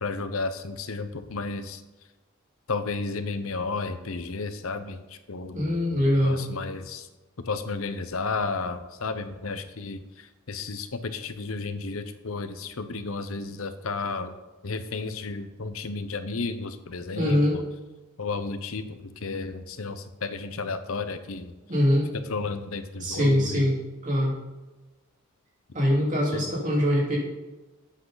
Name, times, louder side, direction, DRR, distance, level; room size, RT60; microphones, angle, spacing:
voice 1, 0.0-1.8 2.7-7.1 7.4-14.3 14.6-17.6 18.2-21.5 22.3-23.7 26.3-26.5, left 3 dB, 75° left, 10 dB, 0.8 m, -33 dB
voice 2, 5.5-6.4 17.1-17.6 21.7-22.1 23.0-23.8 24.0-24.4 25.7-27.2, equal, 35° right, -4 dB, 3.5 m, -23 dB
13.0 x 8.6 x 4.0 m, 1.1 s
head